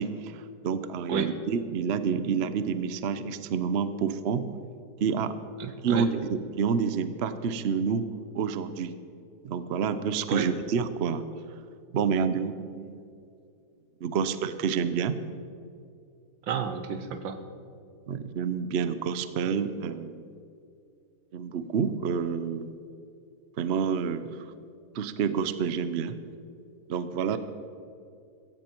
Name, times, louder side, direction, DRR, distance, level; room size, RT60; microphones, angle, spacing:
voice 1, 0.0-4.5 5.0-5.4 5.8-8.1 8.3-8.9 9.4-11.2 11.9-13.0 14.0-15.1 18.1-20.2 21.3-22.7 23.6-24.3 24.9-26.2 26.9-27.4, right 6 dB, 60° right, 12 dB, 0.7 m, -28 dB
voice 2, 5.6-6.1 10.3-10.5 16.5-17.4, right 6 dB, 90° right, 9 dB, 1.8 m, -31 dB
16.0 x 15.5 x 4.5 m, 2.5 s
omnidirectional pair, 2.0 m